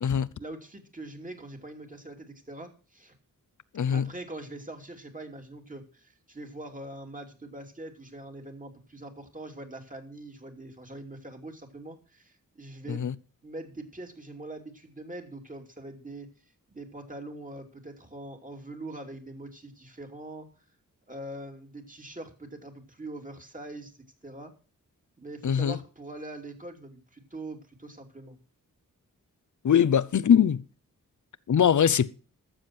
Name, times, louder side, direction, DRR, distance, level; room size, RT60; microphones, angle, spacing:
voice 1, 0.4-3.1 3.9-13.1 13.4-16.3 16.7-20.5 21.1-23.9 24.2-24.5 25.2-28.4, right 2 dB, 25° right, 2.9 m, -43 dB
voice 2, 3.7-4.1 12.9-13.1 25.4-25.8 29.6-30.6 31.5-32.1, left 8 dB, 60° left, 0.7 m, -22 dB
13.0 x 7.4 x 6.0 m
cardioid pair, 50°, 33 cm